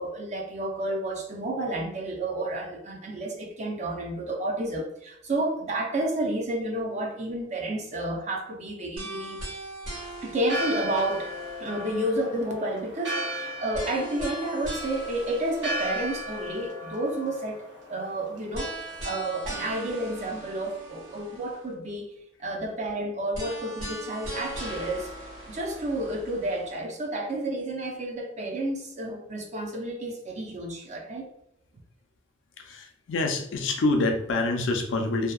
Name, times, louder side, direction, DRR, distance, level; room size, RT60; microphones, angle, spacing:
voice 1, 0.0-9.4 10.2-11.3 11.6-22.1 22.4-25.1 25.5-31.3, right 1 dB, 35° right, 1 dB, 0.5 m, -31 dB
sound 1, 9.0-12.1 13.7-16.7 18.5-21.7 23.3-26.8, right 1 dB, 85° right, 1.3 m, -39 dB
Church bell, 10.4-19.3, equal, 65° right, 0.8 m, -36 dB
voice 2, 32.6-35.3, left 2 dB, 75° left, 3 dB, 0.4 m, -26 dB
2.7 x 2.1 x 2.3 m, 0.76 s
head